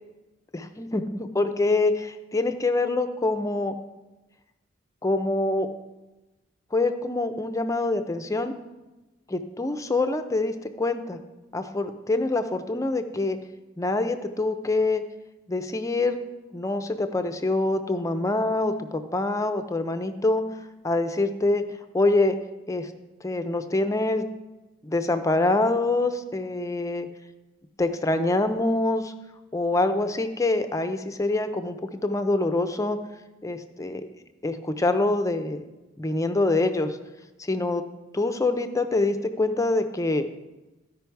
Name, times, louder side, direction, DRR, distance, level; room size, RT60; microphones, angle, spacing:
voice 1, 0.5-3.8 5.0-5.7 6.7-8.5 9.3-11.2 11.5-13.4 13.8-15.0 15.5-16.2 16.5-20.4 20.8-21.6 21.9-22.4 22.7-22.9 23.2-24.3 24.8-27.1 27.8-29.1 29.5-31.8 32.0-33.0 33.4-34.1 34.4-35.6 36.0-37.0 37.5-37.8 38.1-40.3, left 2 dB, 15° left, 9 dB, 0.5 m, -25 dB
13.5 x 5.3 x 4.6 m, 1.1 s
head